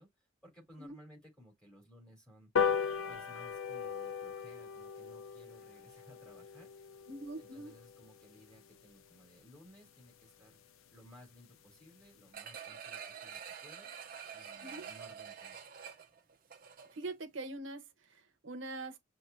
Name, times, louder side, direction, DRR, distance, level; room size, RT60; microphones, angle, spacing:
voice 1, 0.0-2.7 3.1-6.9 7.4-10.6 10.9-13.9 14.3-15.6, equal, 5° left, 3.2 m, -59 dB
sound 1, 2.6-9.3 9.7-9.8 10.1-10.3 10.5-10.6 10.9-11.0 11.3-11.6 12.0-12.1, left 7 dB, 90° left, 0.6 m, -38 dB
voice 2, 7.1-7.7 14.6-14.9 16.9-17.8 18.4-19.0, right 2 dB, 70° right, 1.0 m, -42 dB
sound 2, 12.3-17.1 17.5-17.6, right 7 dB, 45° right, 0.7 m, -47 dB
5.6 x 2.6 x 2.6 m
head